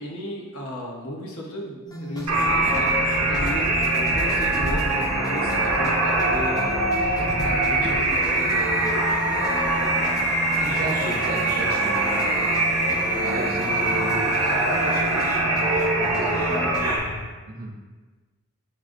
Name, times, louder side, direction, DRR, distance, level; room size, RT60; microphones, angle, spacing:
voice 1, 0.0-9.0, left 1 dB, 75° left, -2 dB, 0.8 m, -35 dB
sound 1, 1.9-16.9, equal, 15° left, 0.4 m, -35 dB
sound 2, 2.3-17.2, equal, 40° left, 0.8 m, -36 dB
sound 3, 2.3-17.0, right 2 dB, 85° right, 0.8 m, -23 dB
voice 2, 10.6-12.0 13.2-14.6 16.0-16.7 17.5-17.8, right 2 dB, 40° right, 0 dB, 0.5 m, -34 dB
7.3 x 2.5 x 2.5 m, 1.3 s
head